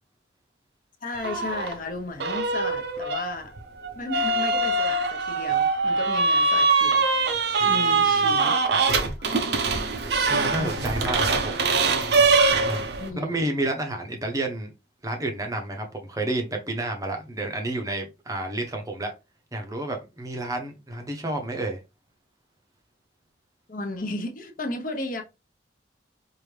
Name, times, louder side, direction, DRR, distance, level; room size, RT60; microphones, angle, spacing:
voice 1, 1.0-3.5 3.9-7.1 7.6-8.5 9.2-9.8 10.6-11.0 13.0-13.4 23.7-25.2, left 2 dB, 45° left, 0.8 m, -34 dB
sound 1, 1.1-1.8 2.2-13.1, right 3 dB, 55° right, 0.6 m, -23 dB
voice 2, 10.3-11.7 12.6-12.9 13.1-14.7 15.0-19.1 19.5-21.8, right 1 dB, 20° right, 0.7 m, -30 dB
4.8 x 2.6 x 3.2 m
head